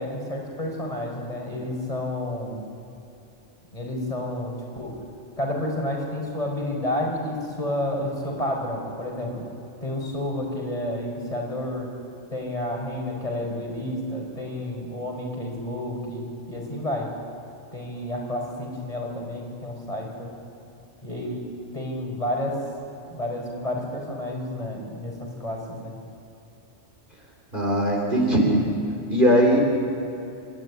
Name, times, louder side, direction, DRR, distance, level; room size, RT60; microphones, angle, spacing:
voice 1, 0.0-2.7 3.7-5.0 5.4-9.5 9.8-11.9 12.3-17.1 17.7-20.3 21.0-22.6 23.1-26.0, left 1 dB, 30° left, 0 dB, 5.2 m, -30 dB
voice 2, 27.5-28.6 29.1-29.6, equal, 40° right, 0 dB, 4.2 m, -19 dB
28.0 x 15.0 x 9.7 m, 2.8 s
omnidirectional pair, 1.3 m